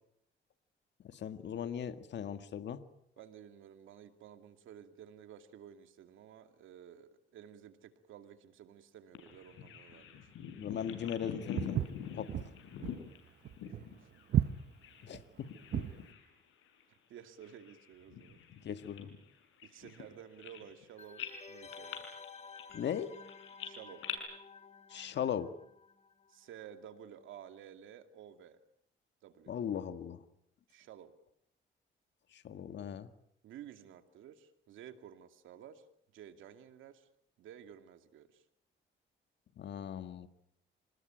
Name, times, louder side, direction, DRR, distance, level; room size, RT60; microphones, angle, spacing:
voice 1, 1.0-2.8 10.6-11.9 12.1-12.5 15.0-15.5 18.6-19.1 22.7-23.1 24.9-25.5 29.5-30.2 32.3-33.1 39.5-40.3, left 8 dB, 65° left, 10 dB, 1.8 m, -38 dB
voice 2, 3.2-10.3 16.9-18.4 19.6-22.2 23.6-24.1 26.3-28.6 29.2-29.5 30.7-31.1 33.4-35.8 36.1-37.1 37.4-38.4, right 9 dB, 80° right, 8 dB, 2.5 m, -53 dB
Bird vocalization bird call bird song, 9.1-15.1 15.4-16.3 16.6-16.8 17.4-20.8 21.2-24.1, left 8 dB, 85° left, 6.3 m, -46 dB
Walk footsteps, 11.6-16.0, right 10 dB, 60° right, 1.1 m, -34 dB
sound 1, 21.0-26.5 26.7-26.8, left 5 dB, 35° left, 1.8 m, -53 dB
26.5 x 20.0 x 9.1 m, 0.73 s
cardioid pair, 90°, 20 cm